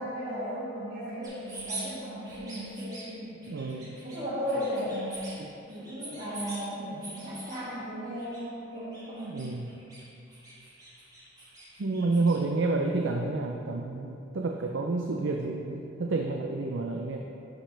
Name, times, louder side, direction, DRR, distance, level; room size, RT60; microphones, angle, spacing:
voice 1, 0.0-3.4 4.0-5.3 5.7-9.4, equal, 55° right, -12 dB, 1.9 m, -35 dB
sound 1, 1.2-1.9 2.2-3.0 3.4-4.2 4.4-5.3 5.7-6.6 7.0-7.6 8.1-8.4 8.7-10.0 10.3-12.4, right 2 dB, 20° right, 1.8 m, -44 dB
voice 2, 3.5-4.0 5.4-5.5 9.2-9.8 11.8-17.2, right 3 dB, 75° right, 1 dB, 0.5 m, -30 dB
11.5 x 5.1 x 3.3 m, 2.7 s
head